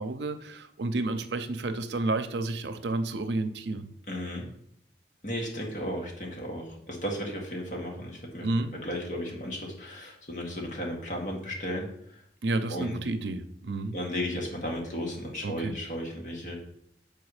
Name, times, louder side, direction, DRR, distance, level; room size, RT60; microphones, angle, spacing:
voice 1, 0.0-3.9 8.4-8.7 12.4-14.0 15.4-15.7, right 2 dB, 80° right, 10 dB, 0.6 m, -31 dB
voice 2, 4.1-4.5 5.2-8.5 8.8-12.2 12.7-12.9 13.9-16.5, equal, 45° left, -1 dB, 1.9 m, -34 dB
7.1 x 4.6 x 4.9 m, 0.69 s
head